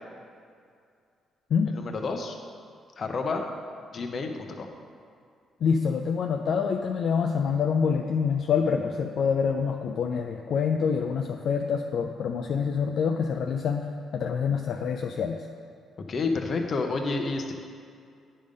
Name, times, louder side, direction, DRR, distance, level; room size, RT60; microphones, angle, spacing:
voice 1, 1.7-2.4 3.0-3.5 3.9-4.7 16.1-17.5, left 3 dB, 50° left, 4 dB, 0.8 m, -29 dB
voice 2, 5.6-13.9 14.1-15.5, left 6 dB, 65° left, 3 dB, 0.4 m, -26 dB
9.9 x 3.6 x 5.2 m, 2.3 s
cardioid pair, 90°, 0 cm